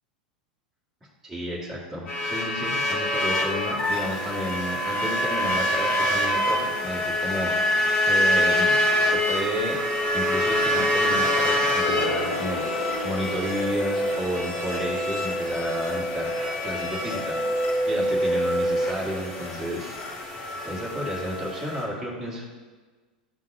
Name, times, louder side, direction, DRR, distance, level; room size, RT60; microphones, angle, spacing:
voice 1, 1.2-9.8 10.1-16.3 16.6-20.3 20.6-22.4, equal, 10° right, -6 dB, 1.7 m, -32 dB
sound 1, 2.1-21.8, left 1 dB, 35° left, 1.9 m, -25 dB
Gong, 11.8-17.7 18.0-18.1, left 3 dB, 80° left, 0.8 m, -36 dB
10.5 x 3.8 x 2.7 m, 1.4 s
figure-of-eight pair, 90°, 5 cm